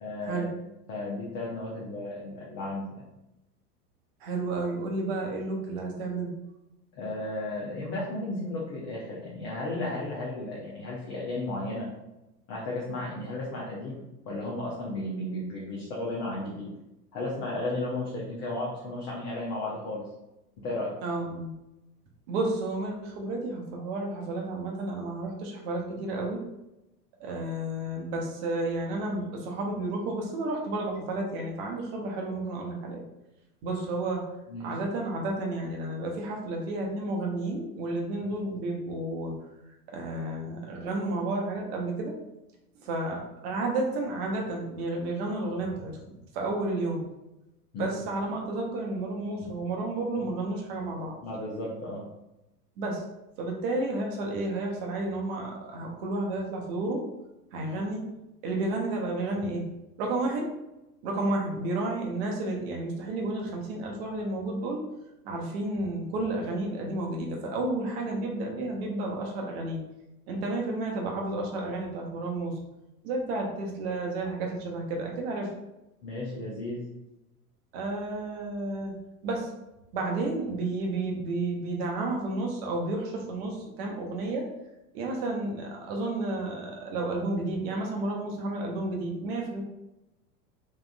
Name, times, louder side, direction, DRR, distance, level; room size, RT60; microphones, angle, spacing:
voice 1, 0.0-0.5 0.9-3.0 6.9-11.9 12.5-14.0 14.3-16.7 17.1-20.1 20.6-21.0 34.5-34.7 47.7-48.0 51.2-52.0 76.0-76.8, left 2 dB, 25° left, -5 dB, 0.5 m, -34 dB
voice 2, 4.2-6.3 21.0-21.5 22.3-26.4 27.2-33.0 33.6-34.2 34.6-39.3 39.9-42.1 42.8-46.0 46.3-47.0 47.8-51.1 52.8-53.0 53.4-57.0 57.5-58.0 58.4-59.6 60.0-60.5 61.0-64.8 65.2-69.8 70.3-72.6 73.0-75.5 77.7-78.9 79.2-79.5 79.9-84.5 84.9-89.6, right 2 dB, 40° right, 0 dB, 0.7 m, -31 dB
3.5 x 2.3 x 2.2 m, 0.93 s
figure-of-eight pair, 85°, 48 cm